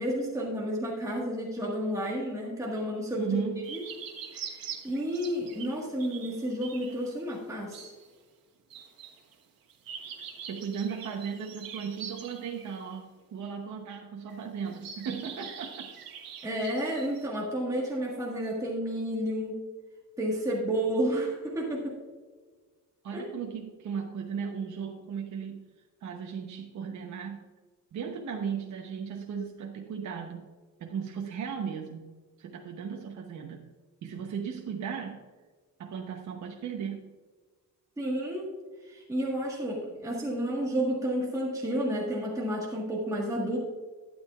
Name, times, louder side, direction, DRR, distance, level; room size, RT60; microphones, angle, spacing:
voice 1, 0.0-3.8 4.3-7.9 16.4-19.6 20.2-21.9 23.1-23.2 38.0-38.5 38.8-43.6, equal, 10° right, -4 dB, 1.6 m, -31 dB
voice 2, 3.1-3.7 10.5-15.9 23.0-25.6 26.0-27.5 27.9-30.5 30.8-32.1 32.4-33.6 34.0-35.2 35.8-37.1, right 6 dB, 55° right, 2 dB, 0.9 m, -36 dB
sound 1, 3.6-5.7 6.0-7.4 7.7-8.1 8.7-9.3 9.7-12.8 13.9-14.0 14.3-14.4 14.7-17.3, right 7 dB, 85° right, 1.6 m, -43 dB
12.0 x 9.8 x 2.4 m, 1.4 s
cardioid pair, 155°, 34 cm